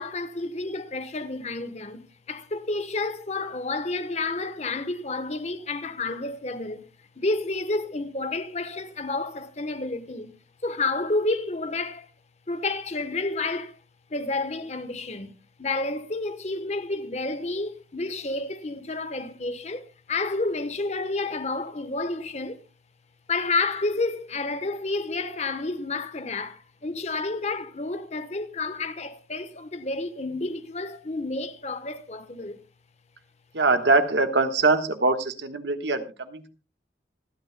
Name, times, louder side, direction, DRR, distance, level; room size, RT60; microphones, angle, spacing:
voice 1, 0.0-6.8 7.2-10.3 10.6-12.1 12.5-13.8 14.1-15.3 15.6-22.6 23.3-32.6, left 3 dB, 35° left, 1.1 m, -30 dB
voice 2, 33.5-36.5, right 3 dB, 70° right, 1.4 m, -23 dB
26.0 x 9.8 x 2.2 m
head